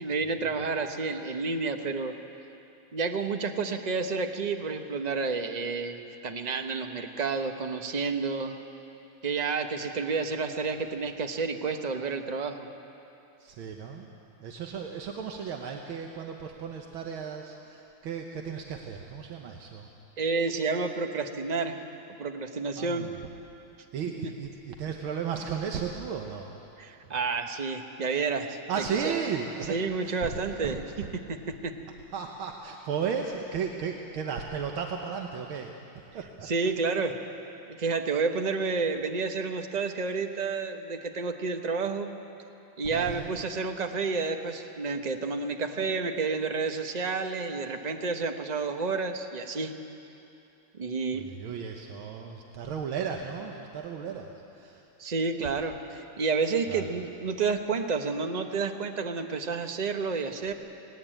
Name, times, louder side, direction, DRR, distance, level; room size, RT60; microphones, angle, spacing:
voice 1, 0.0-2.1 2.9-8.5 9.2-12.7 20.2-21.8 22.2-23.1 24.2-24.3 26.8-28.6 29.7-30.8 31.3-31.4 31.6-31.7 36.5-37.2 37.8-42.1 42.8-49.7 50.7-51.3 55.0-60.5, right 4 dB, 45° right, 6 dB, 0.5 m, -30 dB
voice 2, 13.4-14.1 14.4-19.9 22.7-23.1 23.9-26.6 28.7-30.8 32.1-35.7 36.1-36.5 42.9-43.3 51.1-54.9 56.7-56.9, right 6 dB, 85° right, 2 dB, 1.9 m, -35 dB
18.0 x 18.0 x 9.0 m, 2.8 s
omnidirectional pair, 2.2 m